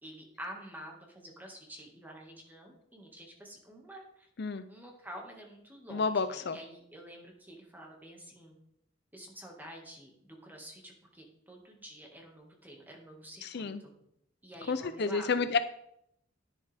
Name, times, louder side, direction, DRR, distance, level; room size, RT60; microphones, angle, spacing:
voice 1, 0.0-4.3 4.7-8.5 9.1-13.9 14.4-15.4, equal, 10° right, 0 dB, 1.9 m, -49 dB
voice 2, 5.9-6.6 13.4-13.8 14.7-15.6, left 4 dB, 60° left, 11 dB, 0.6 m, -30 dB
10.5 x 10.0 x 3.5 m, 0.74 s
head